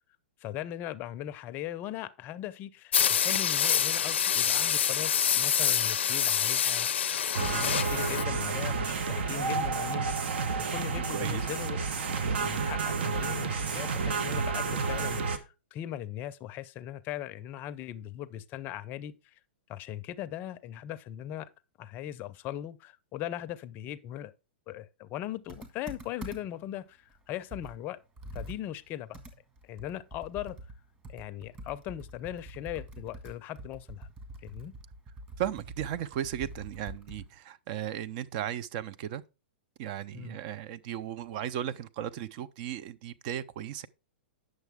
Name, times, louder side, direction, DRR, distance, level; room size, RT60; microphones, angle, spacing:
voice 1, 0.4-7.1 7.4-19.1 19.7-21.5 21.8-24.3 24.7-28.0 28.3-29.2 29.6-30.6 31.1-34.1 34.4-34.7 40.1-40.4, left 12 dB, 30° left, 0.5 m, -39 dB
sound 1, 2.9-8.2, left 8 dB, 80° left, 0.5 m, -26 dB
sound 2, 7.3-15.4, right 4 dB, 70° right, 1.0 m, -30 dB
voice 2, 10.9-11.5 35.4-39.2 39.8-43.9, right 10 dB, 45° right, 0.5 m, -36 dB
Computer keyboard, 25.5-26.7 27.1-27.2 27.5-37.4, right 1 dB, 20° right, 1.7 m, -45 dB
9.2 x 6.4 x 3.5 m
hypercardioid pair, 130°, 6 cm